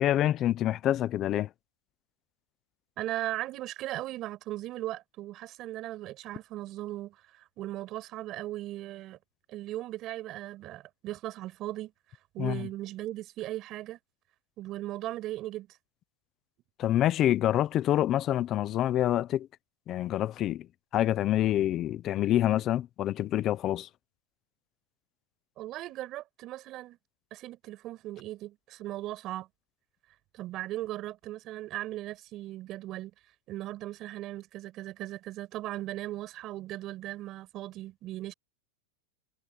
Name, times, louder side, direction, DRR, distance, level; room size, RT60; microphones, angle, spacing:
voice 1, 0.0-1.5 12.4-12.7 16.8-19.5 19.9-20.7 20.9-23.9, left 12 dB, 20° left, 0.5 m, -26 dB
voice 2, 3.0-9.2 9.5-11.9 12.3-14.0 14.6-15.7 25.6-27.0 27.3-29.5 30.3-33.1 33.5-38.3, right 15 dB, 25° right, 7.2 m, -38 dB
supercardioid pair, 180°, 0 cm